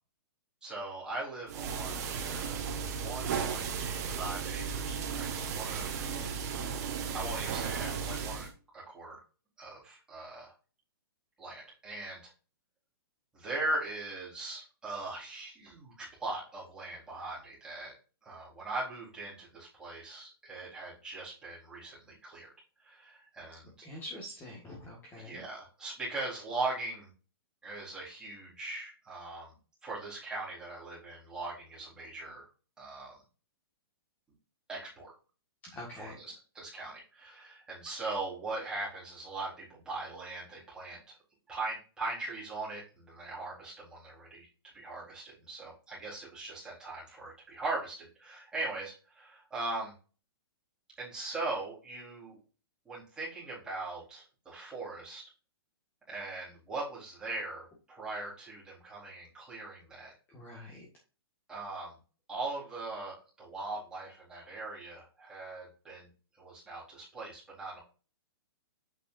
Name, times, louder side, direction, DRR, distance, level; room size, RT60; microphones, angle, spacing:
voice 1, 0.6-2.6 3.0-5.9 7.1-8.5 8.7-9.2 9.6-10.5 11.4-12.3 13.3-17.9 18.2-22.5 22.8-23.8 25.2-27.1 27.6-29.6 29.8-32.5 32.8-33.2 34.7-35.1 35.9-41.2 41.5-44.5 44.7-49.9 51.0-52.4 52.8-55.2 56.1-60.1 61.5-62.0 62.3-66.1 66.4-67.8, right 2 dB, 5° right, -7 dB, 4.3 m, -40 dB
sound 1, 1.5-8.5, right 6 dB, 40° right, 1.8 m, -35 dB
voice 2, 6.0-6.4 23.8-25.4 35.6-36.2 60.3-60.9, left 1 dB, 15° left, -3 dB, 1.9 m, -45 dB
8.4 x 6.5 x 2.7 m, 0.34 s
hypercardioid pair, 165°, 13 cm